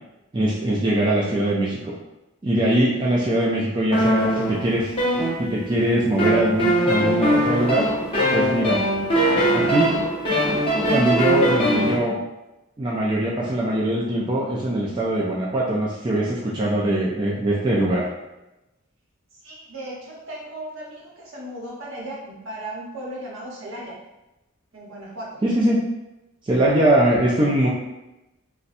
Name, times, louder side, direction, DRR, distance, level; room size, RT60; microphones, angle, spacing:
voice 1, 0.3-1.9 2.4-4.9 5.4-7.9 8.3-8.8 9.5-10.0 10.9-12.1 12.8-18.1 25.4-25.8 26.4-27.7, right 1 dB, 20° right, -5 dB, 0.4 m, -22 dB
sound 1, 3.9-5.8 6.2-12.0, right 1 dB, 25° left, 0.8 m, -21 dB
voice 2, 19.4-24.0 24.7-25.4, right 1 dB, 65° right, -4 dB, 0.9 m, -36 dB
4.0 x 2.2 x 2.5 m, 0.97 s
head